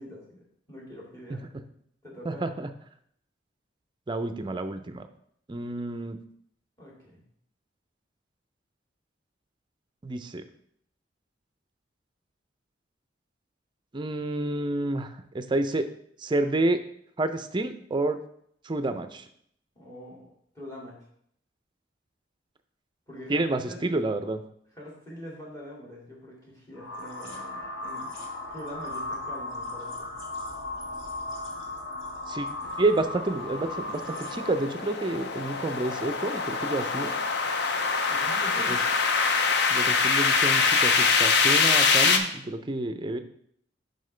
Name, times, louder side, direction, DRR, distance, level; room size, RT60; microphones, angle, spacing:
voice 1, 0.0-1.4 2.0-2.5 6.8-7.2 19.7-21.1 23.1-23.8 24.7-28.1 28.5-30.1 38.1-38.9, equal, 15° left, -3 dB, 2.3 m, -44 dB
voice 2, 2.2-2.7 4.1-5.1 5.5-6.2 10.0-10.4 13.9-15.9 16.2-16.8 17.2-18.2 18.6-19.3 23.3-24.4 32.3-32.5 32.8-37.1 38.7-38.8 39.7-43.2, right 2 dB, 25° right, 10 dB, 0.4 m, -29 dB
sound 1, 26.7-34.8, left 2 dB, 90° left, 1.6 m, -36 dB
sound 2, 33.1-42.2, left 5 dB, 60° left, 0.6 m, -24 dB
7.5 x 5.5 x 3.3 m, 0.68 s
head